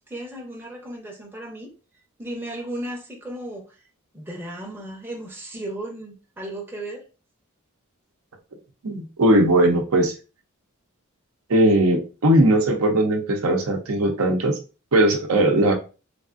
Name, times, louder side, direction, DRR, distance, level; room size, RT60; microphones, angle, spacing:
voice 1, 0.1-1.7 2.2-3.8 4.1-7.0, right 1 dB, 10° right, 0.6 m, -35 dB
voice 2, 8.8-10.1 11.5-14.5 14.9-15.7, right 1 dB, 70° right, 0.7 m, -19 dB
3.3 x 2.4 x 2.5 m
head